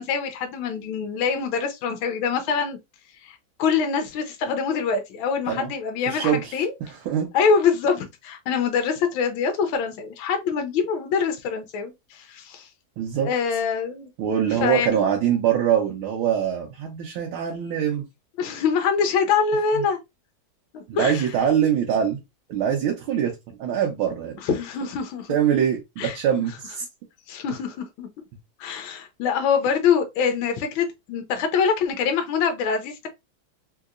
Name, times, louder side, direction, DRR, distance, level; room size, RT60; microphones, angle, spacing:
voice 1, 0.0-2.8 3.2-6.7 7.3-12.7 13.2-14.1 14.5-14.9 18.4-20.0 20.7-21.3 24.4-25.3 26.0-26.2 27.3-28.1 28.6-33.1, left 6 dB, 80° left, 1.4 m, -24 dB
voice 2, 6.1-7.3 13.0-13.3 14.2-18.0 19.7-19.8 20.9-22.2 22.5-24.4 25.3-26.9, right 9 dB, 85° right, 1.6 m, -23 dB
3.9 x 2.8 x 2.4 m
omnidirectional pair, 2.2 m